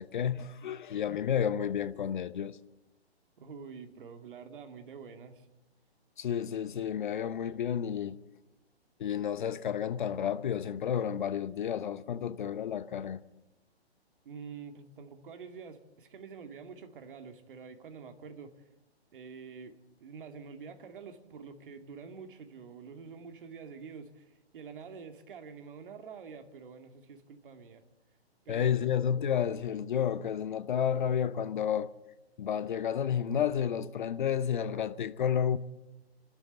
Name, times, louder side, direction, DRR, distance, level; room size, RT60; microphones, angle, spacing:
voice 1, 0.0-2.6 6.2-8.2 9.0-13.2 28.5-31.9 32.4-35.6, left 8 dB, 50° left, 0.8 m, -31 dB
voice 2, 3.4-5.5 14.2-18.5 19.1-27.8 28.4-28.9, right 5 dB, 55° right, 2.4 m, -47 dB
28.0 x 12.5 x 8.0 m
figure-of-eight pair, 135°, 32 cm